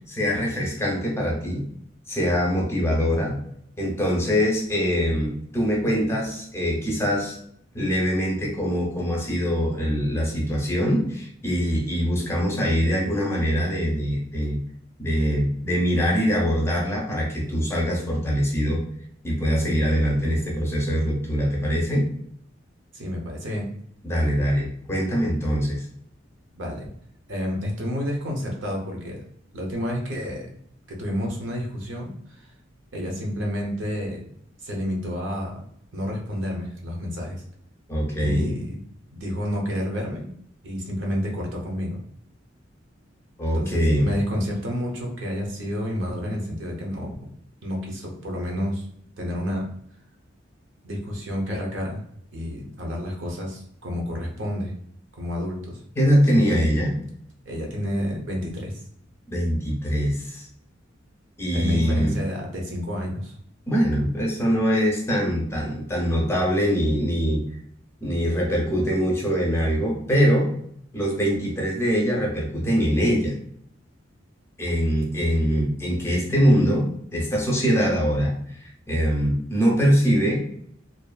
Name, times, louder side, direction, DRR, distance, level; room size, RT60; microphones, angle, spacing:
voice 1, 0.1-1.7 2.1-3.4 3.8-7.4 7.7-14.6 15.0-18.8 19.2-22.1 24.0-25.8 37.9-38.6 43.4-44.1 56.0-56.9 59.3-60.5 61.4-62.1 63.7-67.4 68.0-70.5 70.9-73.3 74.6-78.6 78.9-80.4, equal, 15° left, -2 dB, 0.5 m, -23 dB
voice 2, 22.9-23.7 26.5-26.9 27.3-29.2 29.5-30.5 30.9-32.5 32.9-34.2 34.6-35.6 35.9-37.4 38.2-38.8 39.1-40.3 40.6-42.0 43.5-47.1 47.6-48.9 49.2-49.6 50.8-52.0 52.3-54.7 55.1-55.8 56.3-56.6 57.5-58.8 61.5-63.3, equal, 75° right, 0 dB, 0.7 m, -30 dB
2.6 x 2.4 x 2.2 m, 0.67 s
head